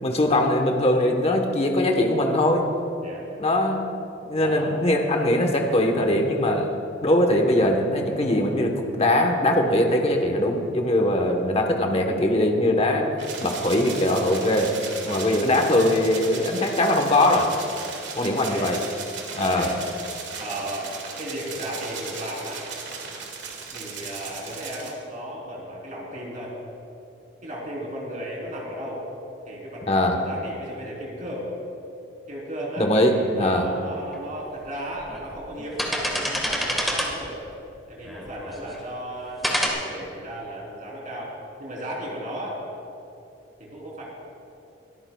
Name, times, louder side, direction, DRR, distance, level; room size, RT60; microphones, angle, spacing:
voice 1, 0.0-2.7 3.4-3.9 4.2-6.7 7.0-13.1 13.4-14.7 15.0-17.5 18.2-18.8 19.4-19.7 29.9-30.2 32.8-33.7, left 1 dB, 30° left, 3 dB, 1.1 m, -21 dB
voice 2, 3.0-3.3 4.4-4.7 18.2-18.8 19.3-19.8 20.4-22.6 23.7-26.5 27.4-29.0 29.4-31.5 32.3-37.4 37.9-42.6 43.6-44.0, equal, 45° right, -3 dB, 3.5 m, -35 dB
sound 1, 13.2-24.9, right 5 dB, 65° right, 1.9 m, -37 dB
sound 2, 34.1-34.2 34.9-35.2 35.6-37.3 38.0-38.8 39.4-39.7, equal, ahead, 1.5 m, -27 dB
22.5 x 14.0 x 2.3 m, 2.8 s
head